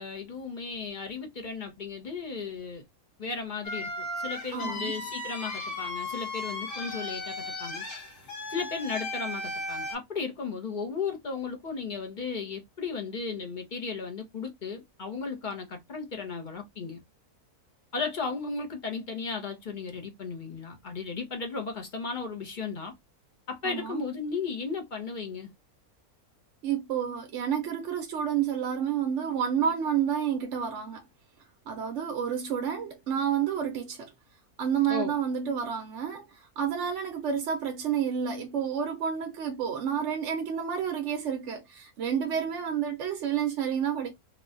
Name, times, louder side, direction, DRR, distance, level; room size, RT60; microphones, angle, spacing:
voice 1, 0.0-2.8 3.2-7.9 8.5-17.0 17.9-22.9 23.5-25.5 34.9-35.1, left 5 dB, 40° left, 0.7 m, -35 dB
sound 1, 3.6-10.0, left 2 dB, 60° left, 1.4 m, -36 dB
voice 2, 4.5-4.9 23.6-24.0 26.6-31.0 31.7-34.1 34.6-44.1, right 8 dB, 65° right, 0.8 m, -30 dB
3.0 x 2.2 x 2.4 m
omnidirectional pair, 1.6 m